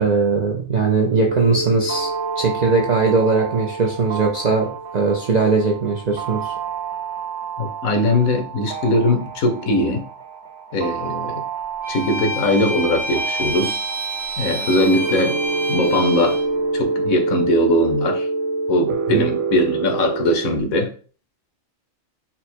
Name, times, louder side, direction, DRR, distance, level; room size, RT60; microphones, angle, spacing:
voice 1, 0.0-2.1 2.4-6.5 19.1-19.3, right 4 dB, 60° right, 0 dB, 0.4 m, -20 dB
sound 1, 1.1-20.6, right 4 dB, 90° right, 1.0 m, -27 dB
voice 2, 7.6-10.0 10.7-11.4 11.9-13.8 14.4-15.4 15.7-16.4 16.7-18.3 18.7-20.9, left 1 dB, 85° left, 4 dB, 1.3 m, -20 dB
Bowed string instrument, 11.8-16.5, right 1 dB, 15° right, 0.9 m, -28 dB
4.3 x 2.0 x 4.3 m, 0.39 s
omnidirectional pair, 1.4 m